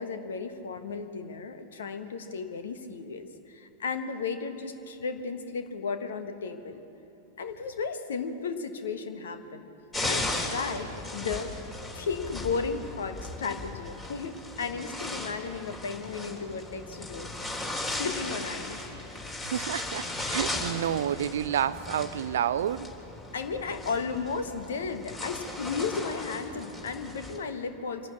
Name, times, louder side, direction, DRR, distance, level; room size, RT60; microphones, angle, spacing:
voice 1, 0.0-6.8 7.4-9.7 10.0-11.6 11.9-18.8 23.3-28.1, left 5 dB, 65° left, 8 dB, 1.4 m, -34 dB
sound 1, 9.9-27.4, left 2 dB, 20° left, 3.4 m, -37 dB
voice 2, 19.4-22.9, right 10 dB, 60° right, 17 dB, 0.5 m, -29 dB
25.5 x 12.0 x 8.5 m, 2.9 s
figure-of-eight pair, 90°, 0 cm